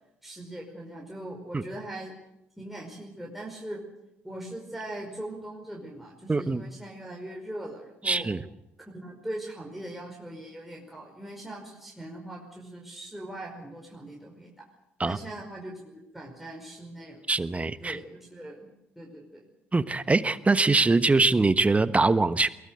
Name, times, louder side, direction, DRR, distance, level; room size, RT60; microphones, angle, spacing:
voice 1, 0.2-2.1 2.6-3.8 4.2-8.3 8.9-14.5 15.0-17.2 17.8-18.7 19.0-19.5, right 1 dB, 5° right, -2 dB, 5.2 m, -40 dB
voice 2, 6.3-6.6 8.0-8.4 15.0-15.2 17.3-18.0 19.7-22.5, right 3 dB, 20° right, 14 dB, 1.2 m, -23 dB
22.5 x 19.0 x 8.1 m, 0.86 s
hypercardioid pair, 50°, 6 cm